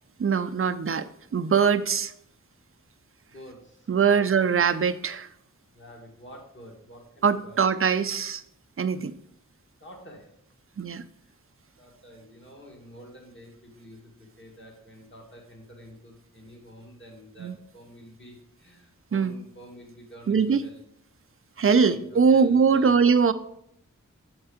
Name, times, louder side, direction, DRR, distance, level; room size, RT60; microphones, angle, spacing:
voice 1, 0.2-2.1 3.9-5.3 7.2-8.4 8.8-9.1 10.8-11.0 17.4-17.6 19.1-19.3 20.3-20.6 21.6-23.3, right 6 dB, 45° right, 10 dB, 0.5 m, -22 dB
voice 2, 3.3-4.5 5.7-7.7 9.8-10.4 11.2-11.3 11.8-20.8 21.7-23.0, equal, 35° left, -1 dB, 1.9 m, -48 dB
7.9 x 4.5 x 4.9 m, 0.73 s
wide cardioid pair, 80°, 31 cm